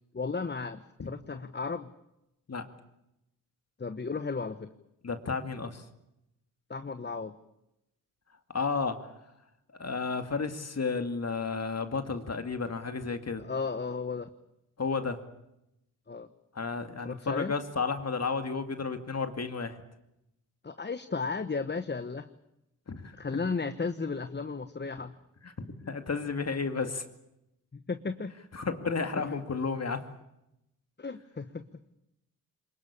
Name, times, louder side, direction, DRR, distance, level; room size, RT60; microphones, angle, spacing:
voice 1, 0.1-1.9 3.8-4.7 6.7-7.4 13.4-14.3 16.1-16.3 17.0-17.5 20.6-22.3 23.2-25.1 27.7-28.3 29.2-29.4 31.0-31.7, left 4 dB, 30° left, 11 dB, 1.2 m, -34 dB
voice 2, 5.0-5.8 8.5-9.1 9.8-13.4 14.8-15.2 16.5-19.8 22.9-23.4 25.4-27.1 28.5-30.1, left 4 dB, 45° left, 8 dB, 2.3 m, -32 dB
23.0 x 20.5 x 8.7 m, 0.86 s
supercardioid pair, 50°, 37 cm